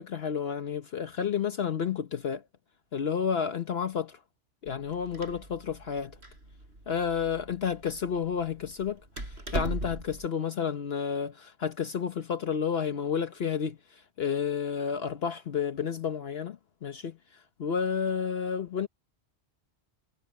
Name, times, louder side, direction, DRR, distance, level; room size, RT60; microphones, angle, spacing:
voice 1, 0.0-2.4 2.9-4.2 4.6-6.2 6.9-9.0 9.3-18.9, left 7 dB, 60° left, 1.1 m, -31 dB
Door, 4.7-10.3, right 1 dB, 65° right, 6.4 m, -39 dB
omnidirectional pair, 1.2 m